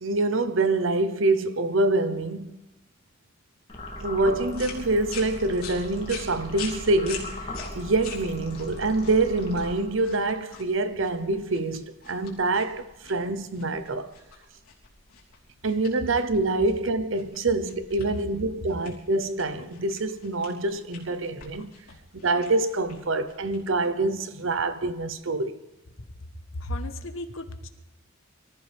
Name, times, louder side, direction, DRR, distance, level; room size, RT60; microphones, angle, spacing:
voice 1, 0.0-2.5 4.0-14.1 15.6-21.7 22.1-25.6, right 2 dB, 65° right, 0.9 m, -26 dB
sound 1, 3.7-10.2, left 1 dB, 25° left, 2.7 m, -39 dB
sound 2, 4.5-24.1, left 6 dB, 90° left, 3.3 m, -45 dB
voice 2, 26.5-27.7, left 1 dB, 70° left, 1.2 m, -34 dB
24.5 x 14.0 x 3.5 m
head